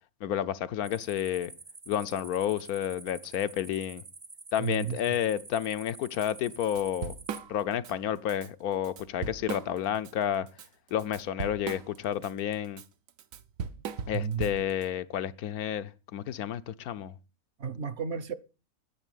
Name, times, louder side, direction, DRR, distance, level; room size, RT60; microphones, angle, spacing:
voice 1, 0.2-1.5 1.9-4.0 4.5-7.1 7.5-10.5 10.9-12.8 14.1-17.1, left 10 dB, 85° left, 1.3 m, -30 dB
sound 1, 0.8-7.4, right 3 dB, 30° right, 0.4 m, -48 dB
voice 2, 4.6-5.2 14.1-14.6 17.6-18.3, right 7 dB, 55° right, 1.0 m, -33 dB
Drum kit / Drum, 6.2-6.3 6.6-7.9 8.3-8.5 8.8-10.1 10.5-14.9, right 6 dB, 70° right, 1.2 m, -38 dB
10.0 x 7.6 x 9.2 m
omnidirectional pair, 1.5 m